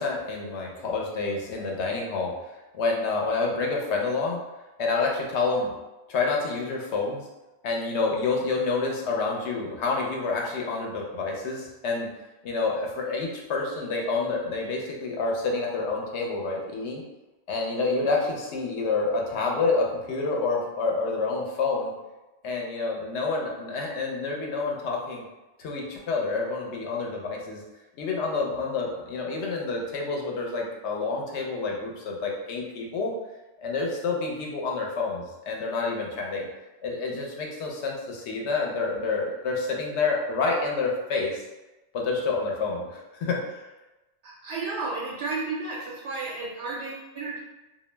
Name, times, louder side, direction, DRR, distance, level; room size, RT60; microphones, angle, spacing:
voice 1, 0.0-2.3 2.7-4.4 4.8-5.7 6.1-7.2 7.6-12.1 12.4-17.0 17.5-21.9 22.4-25.2 25.6-27.6 28.0-33.1 33.6-36.5 36.8-41.4 41.9-43.7, left 3 dB, 85° left, -1 dB, 0.9 m, -28 dB
voice 2, 44.2-47.4, right 3 dB, 85° right, -4 dB, 0.9 m, -32 dB
2.3 x 2.0 x 3.1 m, 1.1 s
omnidirectional pair, 1.1 m